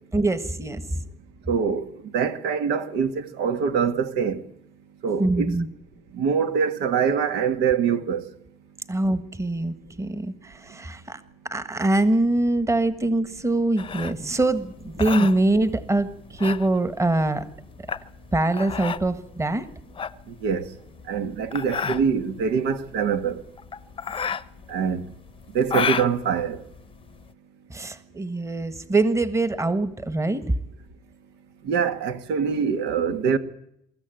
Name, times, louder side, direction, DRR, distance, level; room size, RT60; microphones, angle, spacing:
voice 1, 0.1-0.9 5.2-5.7 8.9-11.2 11.5-17.5 18.3-19.7 27.7-30.5, right 2 dB, 15° right, 1.4 m, -23 dB
voice 2, 1.5-1.9 2.1-4.4 5.0-5.5 6.1-8.3 20.3-20.7 21.1-23.4 24.7-25.0 25.5-26.6 31.6-33.4, right 6 dB, 85° right, 1.7 m, -24 dB
sound 1, 13.8-27.3, left 6 dB, 30° left, 0.7 m, -32 dB
23.5 x 14.0 x 9.1 m
cardioid pair, 110°, 17 cm